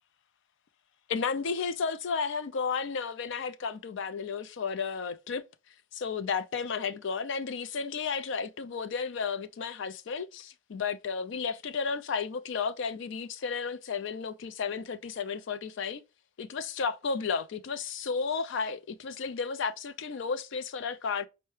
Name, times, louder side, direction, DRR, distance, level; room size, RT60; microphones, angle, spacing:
voice 1, 1.1-5.4 5.9-16.0 16.4-21.3, left 5 dB, 60° left, 0.4 m, -33 dB
5.4 x 2.1 x 3.1 m
head